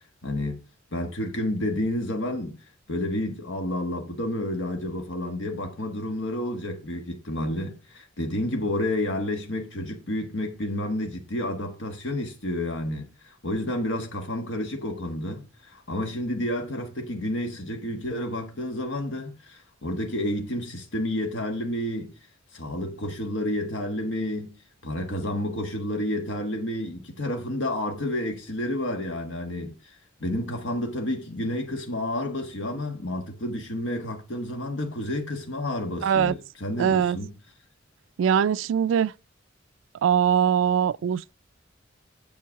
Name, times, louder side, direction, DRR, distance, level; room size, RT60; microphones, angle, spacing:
voice 1, 0.2-0.6 0.9-2.6 2.9-22.1 22.5-24.6 24.8-29.9 30.2-37.3, left 1 dB, 75° left, 1.4 m, -30 dB
voice 2, 36.0-36.4 36.8-37.2 38.2-39.1 40.0-41.3, right 8 dB, 85° right, 0.3 m, -22 dB
7.5 x 7.0 x 4.7 m
head